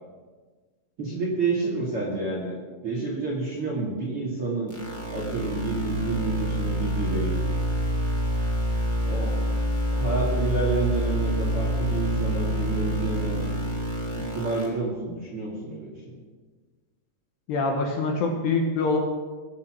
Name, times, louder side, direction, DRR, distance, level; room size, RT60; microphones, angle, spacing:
voice 1, 1.0-2.5 2.8-4.7 5.1-7.4 9.0-9.3 9.9-13.4 14.2-16.2, right 3 dB, 40° right, -4 dB, 2.5 m, -29 dB
sound 1, 4.7-14.6, equal, 5° left, 2.3 m, -27 dB
voice 2, 17.5-19.0, left 3 dB, 65° left, 1 dB, 3.2 m, -24 dB
21.5 x 7.4 x 6.3 m, 1.4 s
omnidirectional pair, 5.7 m